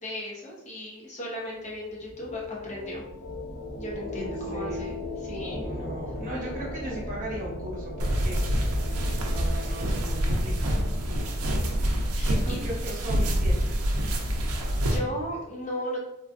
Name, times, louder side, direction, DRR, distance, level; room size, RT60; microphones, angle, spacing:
voice 1, 0.0-3.0 3.7-5.7 12.1-12.6 14.8-16.0, equal, 30° left, -4 dB, 0.9 m, -36 dB
sound 1, 1.4-12.0, left 1 dB, 75° left, 0.7 m, -38 dB
voice 2, 4.1-4.9 5.6-8.4 9.2-10.8 12.3-13.7, right 1 dB, 35° right, -4 dB, 1.0 m, -37 dB
sound 2, 8.0-15.0, equal, 70° right, 0.5 m, -26 dB
3.6 x 2.4 x 2.5 m, 0.94 s
head